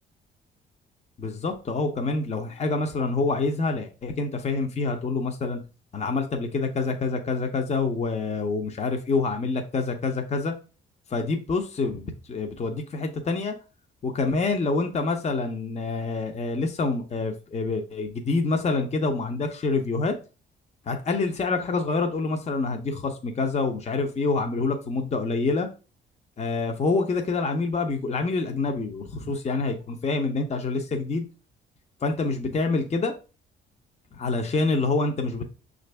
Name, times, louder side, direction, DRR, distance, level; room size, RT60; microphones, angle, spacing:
voice 1, 1.2-5.6 5.9-10.5 11.1-13.5 14.0-20.2 20.9-25.7 26.4-31.2 32.0-33.1 34.1-35.4, left 3 dB, 35° left, 0.7 m, -26 dB
5.8 x 2.6 x 3.3 m
cardioid pair, 90°, 20 cm